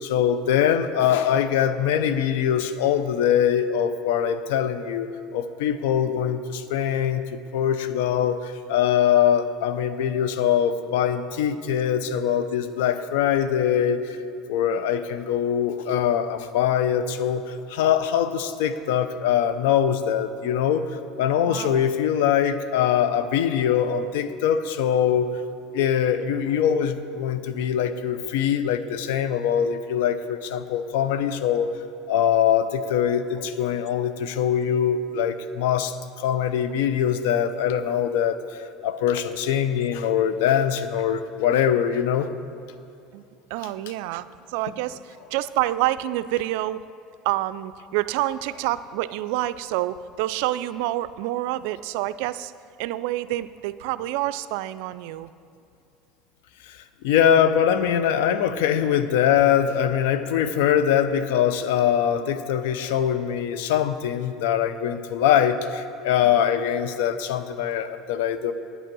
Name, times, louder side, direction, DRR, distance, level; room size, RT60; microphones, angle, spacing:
voice 1, 0.0-14.2 14.5-25.3 25.7-31.7 32.1-42.3 56.6-68.5, left 9 dB, 80° left, 11 dB, 0.6 m, -23 dB
voice 2, 21.5-21.8 43.1-43.2 43.5-46.8 47.2-52.5 52.8-55.3 66.4-66.5, right 15 dB, 75° right, 15 dB, 0.3 m, -28 dB
9.2 x 9.1 x 6.1 m, 2.5 s
supercardioid pair, 90°, 0 cm